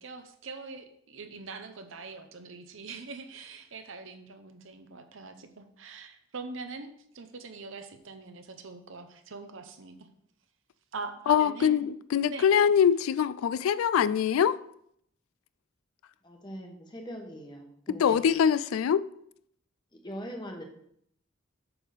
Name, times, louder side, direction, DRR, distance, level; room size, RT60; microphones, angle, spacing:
voice 1, 0.0-10.0 10.9-11.8 12.3-12.5, right 4 dB, 70° right, 0.8 m, -43 dB
voice 2, 11.3-14.6 17.9-19.0, left 8 dB, 90° left, 0.3 m, -23 dB
voice 3, 16.2-18.2 19.9-20.6, equal, 20° left, 1.1 m, -41 dB
8.1 x 3.6 x 6.4 m
head